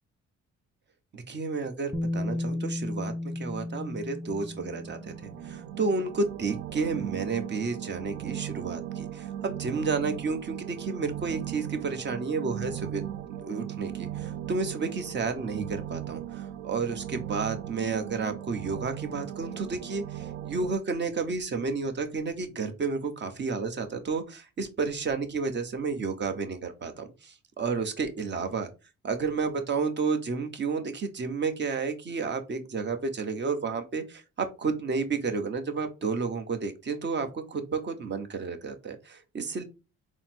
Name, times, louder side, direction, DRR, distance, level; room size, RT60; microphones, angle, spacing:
voice 1, 1.1-13.0 13.4-28.7 29.0-39.6, right 4 dB, 35° right, 7 dB, 0.8 m, -31 dB
Bass guitar, 1.9-5.9 7.0-7.1, left 1 dB, 10° left, 0.4 m, -34 dB
sound 1, 4.5-20.7, right 11 dB, 70° right, 0.5 m, -38 dB
4.0 x 2.0 x 4.2 m, 0.29 s
cardioid pair, 90°, 30 cm